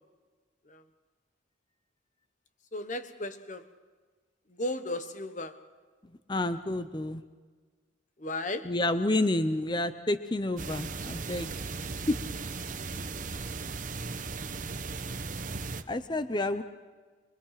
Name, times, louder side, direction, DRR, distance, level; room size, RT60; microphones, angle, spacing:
voice 1, 2.7-3.6 4.6-5.6 8.2-8.7, left 1 dB, 40° left, 10 dB, 1.2 m, -35 dB
voice 2, 6.3-7.2 8.6-11.5 12.1-12.2 15.9-16.6, left 1 dB, 25° left, 11 dB, 0.7 m, -29 dB
sound 1, 10.6-15.8, right 4 dB, 40° right, 0.9 m, -37 dB
24.5 x 22.0 x 5.9 m, 1.4 s
head